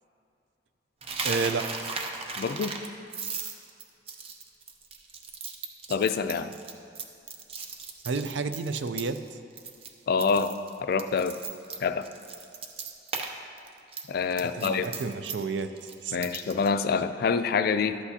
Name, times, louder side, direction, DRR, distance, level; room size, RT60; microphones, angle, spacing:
Coin (dropping), 1.0-9.3 9.6-9.9 10.2-13.3 13.6-16.7, right 4 dB, 35° right, 0.6 m, -36 dB
voice 1, 1.2-1.7 8.0-9.4 14.5-16.3, right 4 dB, 85° right, 9 dB, 0.5 m, -31 dB
voice 2, 2.4-2.8 5.9-6.5 10.1-10.5 10.8-11.4 11.8-12.1 14.1-14.9 16.1-18.0, left 5 dB, 55° left, 10 dB, 0.3 m, -26 dB
12.5 x 8.2 x 2.8 m, 2.5 s
head